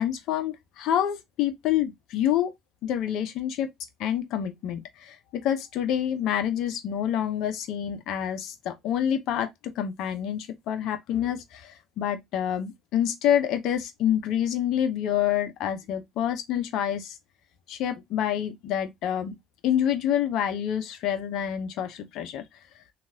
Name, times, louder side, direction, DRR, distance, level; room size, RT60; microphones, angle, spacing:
voice 1, 0.0-2.5 2.8-3.7 4.0-17.1 17.7-19.3 19.6-22.4, left 10 dB, 65° left, 0.7 m, -27 dB
3.0 x 2.4 x 2.6 m
hypercardioid pair, 70°, 0 cm